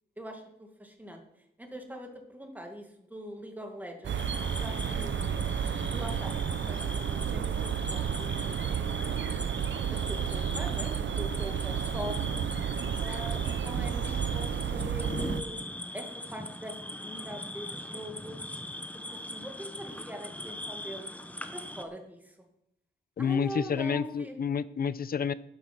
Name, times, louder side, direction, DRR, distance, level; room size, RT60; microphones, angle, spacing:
voice 1, 0.2-1.2 1.6-4.2 4.5-5.4 5.9-9.2 9.8-12.4 13.0-15.6 15.9-18.4 18.9-19.0 19.3-21.1 21.5-22.3 23.2-24.4, equal, 10° right, 3 dB, 1.9 m, -42 dB
sound 1, 4.0-15.4, right 8 dB, 75° right, 0.6 m, -31 dB
sound 2, 4.1-21.8, left 1 dB, 5° left, 0.9 m, -40 dB
voice 2, 23.2-25.3, left 7 dB, 50° left, 17 dB, 0.5 m, -29 dB
11.5 x 8.8 x 6.0 m, 0.77 s
wide cardioid pair, 150°, 20 cm